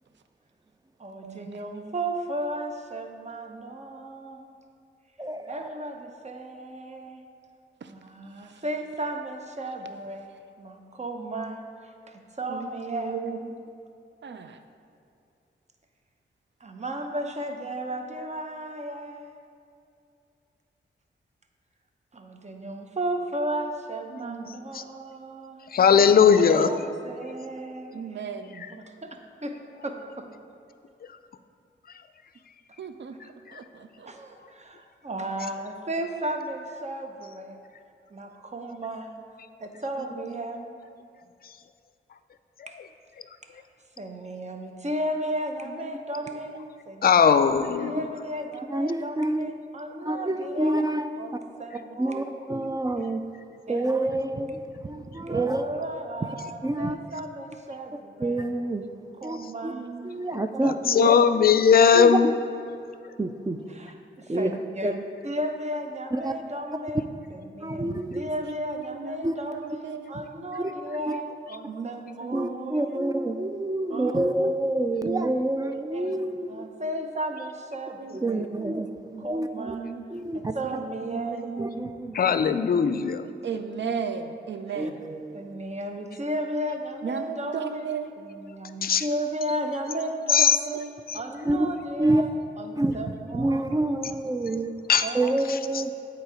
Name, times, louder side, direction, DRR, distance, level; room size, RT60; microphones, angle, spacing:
voice 1, 1.0-4.5 5.5-7.2 7.9-10.3 10.6-11.6 12.1-13.3 16.6-19.2 22.1-25.6 26.3-28.3 28.7-29.6 29.8-30.3 33.2-33.3 34.1-37.6 38.1-39.1 39.6-40.8 44.0-46.5 46.9-47.2 47.8-50.9 51.2-52.2 53.7-53.9 55.3-58.4 59.2-59.9 60.6-61.2 63.7-67.0 67.3-73.0 73.9-74.2 75.9-76.1 76.5-78.4 79.2-79.9 80.3-81.6 84.7-84.9 85.3-87.9 88.2-90.8 91.1-93.7 95.0-95.4, right 1 dB, 35° right, 4 dB, 0.8 m, -34 dB
voice 2, 5.2-5.7 48.7-49.5 50.0-51.4 52.0-53.2 53.7-55.6 56.6-57.0 58.2-58.9 59.2-59.7 60.0-61.1 61.9-62.2 63.2-63.6 64.3-64.5 64.8-64.9 66.1-66.3 67.6-68.3 69.2-69.4 70.6-70.7 71.1-71.2 72.3-76.7 78.1-78.9 79.2-79.8 80.1-80.5 81.6-82.2 84.8-85.4 91.5-91.7 92.0-92.2 92.8-93.0 93.3-94.7 95.1-95.9, right 2 dB, 20° right, 8 dB, 0.4 m, -27 dB
voice 3, 25.7-26.7 28.6-28.7 47.0-48.0 60.6-62.3 82.1-83.3 88.8-89.0 90.3-90.6 94.9-95.0, left 7 dB, 50° left, 11 dB, 0.4 m, -18 dB
voice 4, 27.9-28.4 32.8-33.1 59.8-60.0 69.0-69.1 69.8-70.0 71.7-71.9 72.2-72.5 73.9-74.0 78.3-78.4 79.6-80.0 81.1-81.7 83.4-84.2 84.5-84.9 87.0-87.2 87.5-88.1 90.7-90.9, right 6 dB, 65° right, 8 dB, 0.5 m, -33 dB
8.0 x 4.1 x 4.9 m, 2.5 s
cardioid pair, 50°, 20 cm